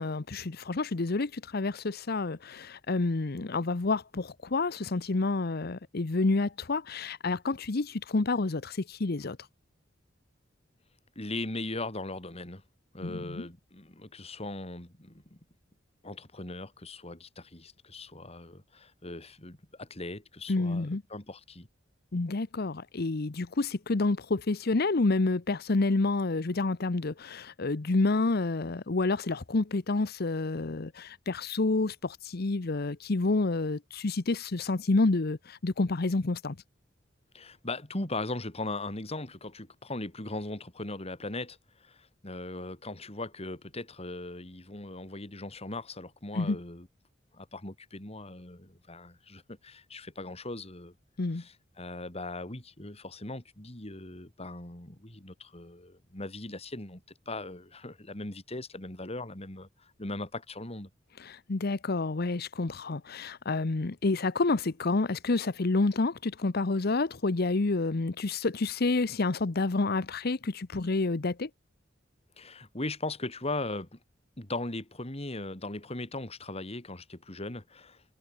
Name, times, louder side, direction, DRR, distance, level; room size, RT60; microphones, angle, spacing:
voice 1, 0.0-9.4 13.0-13.4 20.5-21.0 22.1-36.5 46.3-46.6 51.2-51.4 61.3-71.5, left 3 dB, 55° left, 0.8 m, -29 dB
voice 2, 11.2-12.6 12.9-15.4 16.0-21.7 37.3-46.9 47.3-50.9 51.3-60.9 72.4-74.0 74.4-78.0, left 2 dB, 35° left, 3.6 m, -39 dB
head